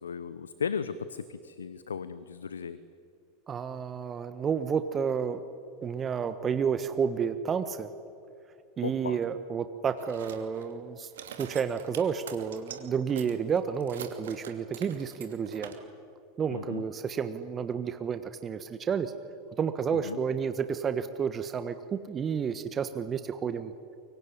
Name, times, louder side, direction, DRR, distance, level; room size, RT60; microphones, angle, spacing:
voice 1, 0.0-2.8 8.8-9.2 16.5-16.8 20.0-20.2, left 6 dB, 80° left, 15 dB, 0.8 m, -36 dB
voice 2, 3.5-5.4 5.8-7.9 8.8-11.1 11.4-15.7 16.4-19.1 19.6-23.7, right 7 dB, 30° right, 10 dB, 1.3 m, -31 dB
sound 1, 10.0-10.8 11.1-12.8 13.1-15.7, right 9 dB, 70° right, 2.8 m, -44 dB
24.0 x 24.0 x 9.9 m, 2.5 s
hypercardioid pair, 85°, 0 cm